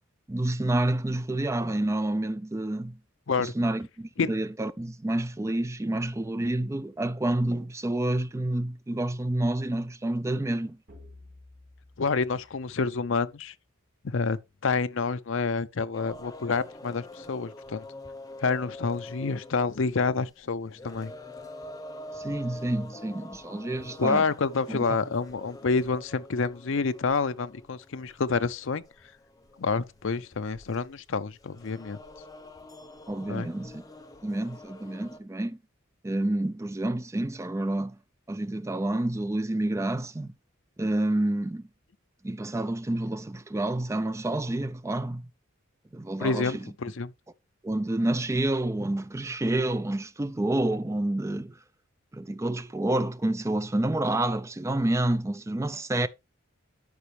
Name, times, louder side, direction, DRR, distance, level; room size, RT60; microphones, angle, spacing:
voice 1, 0.3-3.0 3.4-10.8 22.2-24.3 24.7-24.8 33.1-33.8 34.2-35.6 36.0-38.0 38.3-40.3 40.8-41.6 42.2-45.3 45.9-46.7 47.6-51.6 52.1-56.1, right 1 dB, 15° right, 0.4 m, -28 dB
sound 1, 10.9-13.5, left 2 dB, 55° right, 3.7 m, -53 dB
voice 2, 12.0-13.5 14.0-17.8 18.4-21.1 24.0-28.8 29.6-32.0 33.3-33.5 46.2-47.1, left 4 dB, 65° left, 0.6 m, -28 dB
sound 2, 15.9-35.2, left 1 dB, 15° left, 0.8 m, -46 dB
13.0 x 5.1 x 3.2 m
head